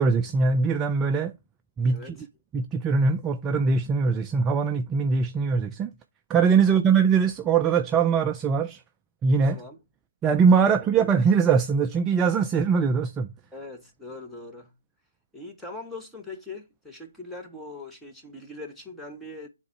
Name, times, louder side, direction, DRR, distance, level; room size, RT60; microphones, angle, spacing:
voice 1, 0.0-1.3 1.8-2.1 2.5-5.9 6.3-8.8 9.2-9.6 10.2-13.3, right 5 dB, 15° right, 0.3 m, -22 dB
voice 2, 1.9-2.3 6.6-6.8 9.4-9.8 10.5-10.7 13.5-14.7 15.3-19.5, left 2 dB, 5° left, 0.9 m, -41 dB
7.3 x 3.7 x 4.4 m
figure-of-eight pair, 150°, 0 cm